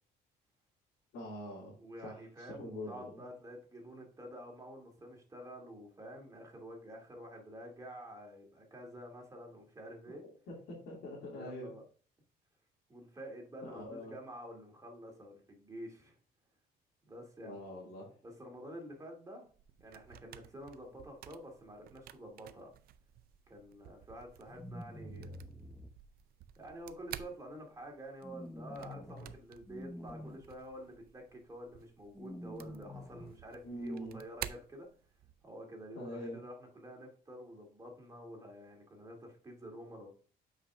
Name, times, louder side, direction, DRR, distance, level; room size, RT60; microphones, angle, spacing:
voice 1, 1.1-1.8 2.0-2.1 2.4-3.2 10.1-10.2 10.5-11.7 13.6-14.1 17.4-18.1 33.6-34.2 35.9-36.4, left 1 dB, 70° left, -5 dB, 2.5 m, -44 dB
voice 2, 1.8-10.2 11.3-11.8 12.9-16.1 17.1-17.6 18.2-19.4 19.8-22.7 23.5-25.4 26.6-34.9 35.4-40.1, equal, 20° right, 1 dB, 2.5 m, -49 dB
sound 1, 19.5-35.5, right 12 dB, 65° right, 0.5 m, -52 dB
sound 2, 24.5-25.9 28.2-29.3 29.7-30.4 32.1-33.3, left 1 dB, 5° left, 0.8 m, -47 dB
8.4 x 5.1 x 2.5 m, 0.42 s
cardioid pair, 110°, 17 cm